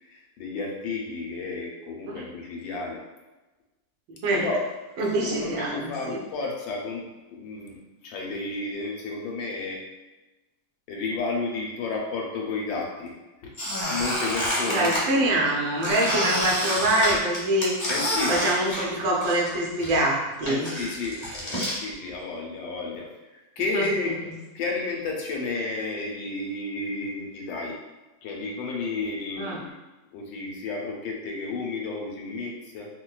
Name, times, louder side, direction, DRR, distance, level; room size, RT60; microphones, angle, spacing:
voice 1, 0.0-3.0 4.3-4.6 5.2-9.8 10.9-13.1 13.4-13.5 13.9-15.3 17.9-18.4 20.5-23.1 23.3-24.2 24.5-27.8 28.2-29.7 30.1-32.9, left 3 dB, 90° left, -1 dB, 1.4 m, -32 dB
voice 2, 4.1-4.5 5.0-6.2 14.6-17.8 18.3-20.7 23.7-24.4 29.4-29.6, right 1 dB, 75° right, -3 dB, 1.4 m, -25 dB
Squeak, 13.6-15.0 15.8-19.5 19.8-21.8, equal, 30° left, 0.5 m, -28 dB
4.6 x 2.2 x 2.3 m, 1.1 s
omnidirectional pair, 2.0 m